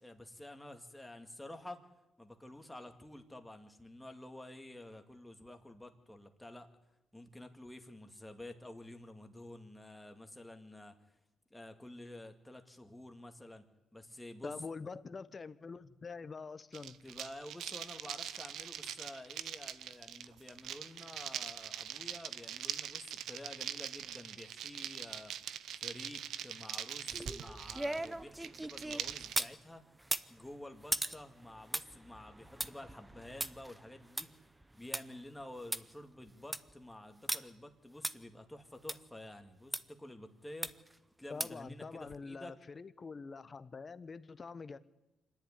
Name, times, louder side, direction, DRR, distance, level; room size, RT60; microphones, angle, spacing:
voice 1, 0.0-1.8 2.2-6.7 7.1-10.9 11.5-13.7 13.9-14.5 17.0-25.3 25.8-29.8 30.3-34.3 34.7-40.8 41.2-42.5, left 1 dB, 10° left, 2.2 m, -50 dB
voice 2, 14.4-17.0 41.3-44.8, left 4 dB, 35° left, 1.0 m, -45 dB
sound 1, 16.7-29.4, right 10 dB, 75° right, 0.7 m, -43 dB
sound 2, 27.1-29.6 30.0-35.0 35.4-35.5 35.7-35.8 36.3-36.7 37.3-37.4 38.0-38.1 38.9-39.0 39.7-39.8 40.6-40.9 41.4-41.7 42.1-42.2, right 1 dB, 10° right, 0.8 m, -38 dB
25.5 x 10.5 x 9.9 m
cardioid pair, 90°, 0 cm